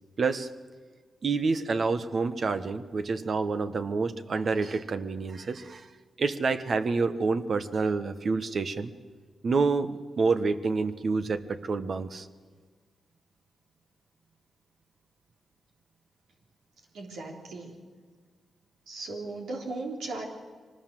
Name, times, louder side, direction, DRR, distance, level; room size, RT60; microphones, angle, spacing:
voice 1, 0.2-0.5 1.2-5.9 6.2-8.9 9.4-12.3, right 4 dB, 55° right, 10 dB, 1.3 m, -28 dB
voice 2, 16.9-17.8 18.9-20.3, right 2 dB, 90° right, 0 dB, 3.7 m, -37 dB
24.0 x 19.5 x 7.7 m, 1.5 s
cardioid pair, 65°, 0 cm